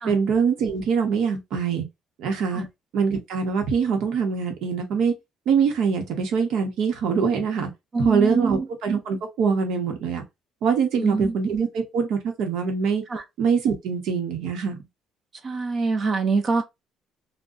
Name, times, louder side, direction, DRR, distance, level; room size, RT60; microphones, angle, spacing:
voice 1, 0.1-1.8 2.2-2.6 2.9-5.1 5.5-7.7 8.0-10.2 10.6-13.0 13.4-14.8, right 6 dB, 80° right, 0.9 m, -23 dB
voice 2, 7.9-8.7 11.0-11.3 13.1-13.2 15.4-16.6, right 4 dB, 40° right, 0.7 m, -24 dB
3.7 x 2.2 x 2.6 m
cardioid pair, 120°, 0 cm